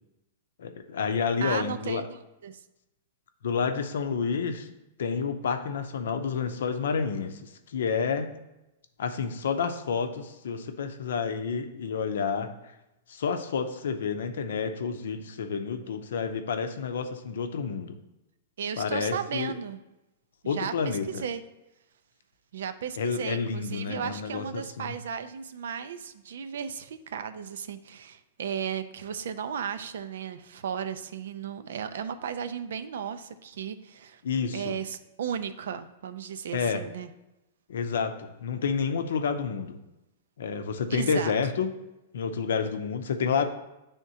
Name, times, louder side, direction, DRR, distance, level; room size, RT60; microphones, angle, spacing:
voice 1, 0.6-2.1 3.4-4.7 5.0-8.3 9.0-12.7 13.1-17.9 18.8-19.5 20.4-21.2 23.0-25.0 34.2-34.8 36.5-36.8 37.7-39.8 40.4-41.7 42.1-43.4, left 6 dB, 80° left, 7 dB, 0.6 m, -29 dB
voice 2, 1.4-2.0 2.4-2.6 18.6-19.8 20.4-21.4 22.5-34.2 34.5-37.1 40.9-41.3, right 7 dB, 75° right, 11 dB, 0.4 m, -35 dB
9.5 x 3.5 x 2.8 m, 0.94 s
hypercardioid pair, 155°, 0 cm